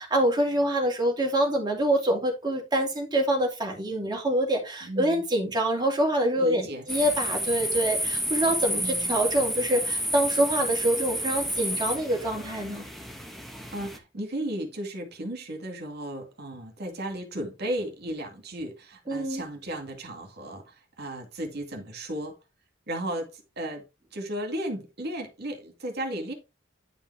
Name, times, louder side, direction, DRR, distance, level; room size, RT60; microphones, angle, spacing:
voice 1, 0.0-12.9 19.1-19.4, right 1 dB, 20° right, 2.6 m, -25 dB
voice 2, 4.8-5.2 6.3-6.9 8.8-9.1 13.7-22.3 22.9-23.8 24.1-26.3, right 1 dB, 55° right, 2.2 m, -35 dB
sound 1, 6.9-14.0, equal, ahead, 1.3 m, -30 dB
10.5 x 5.4 x 3.4 m
head